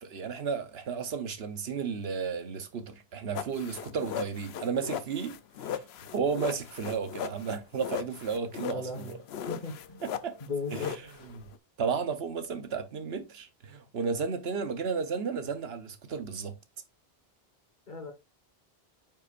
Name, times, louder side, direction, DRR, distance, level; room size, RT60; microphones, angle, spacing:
voice 1, 0.0-5.9 6.1-9.2 10.0-10.4 10.7-11.5 11.8-16.6, right 6 dB, 80° right, 1.2 m, -33 dB
sound 1, 3.3-11.6, left 9 dB, 85° left, 0.9 m, -38 dB
voice 2, 8.7-9.2 9.5-10.0 10.4-10.9 17.9-18.1, left 3 dB, 50° left, 1.7 m, -36 dB
8.9 x 5.4 x 2.5 m
omnidirectional pair, 1.0 m